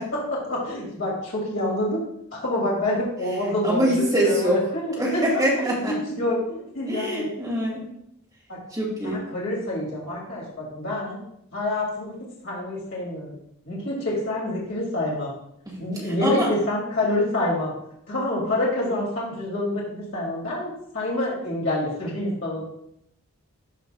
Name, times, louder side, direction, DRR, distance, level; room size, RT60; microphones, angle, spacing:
voice 1, 0.1-2.0 2.3-5.2 5.6-7.3 8.5-8.6 9.0-11.2 11.5-12.1 12.4-13.4 13.7-15.3 15.8-17.7 18.1-22.6, left 1 dB, 60° left, -5 dB, 2.5 m, -27 dB
voice 2, 3.6-4.6 5.0-6.0 6.9-7.9 8.7-9.2 15.7-15.8 16.2-16.5, equal, 15° right, -4 dB, 2.0 m, -23 dB
13.0 x 5.1 x 2.3 m, 0.76 s
head